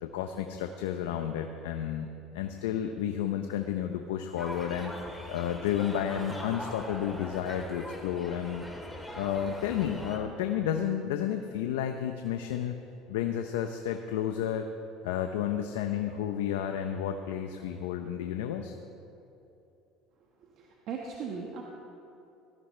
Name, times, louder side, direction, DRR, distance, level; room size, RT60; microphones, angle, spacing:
voice 1, 0.0-8.7 9.1-12.7 13.1-14.7 15.0-18.7, left 9 dB, 90° left, 6 dB, 0.7 m, -32 dB
sound 1, 4.4-10.2, left 1 dB, 5° left, 2.5 m, -42 dB
voice 2, 20.4-21.6, right 5 dB, 60° right, -1 dB, 1.4 m, -38 dB
18.0 x 13.5 x 3.3 m, 2.8 s
supercardioid pair, 95°, 0 cm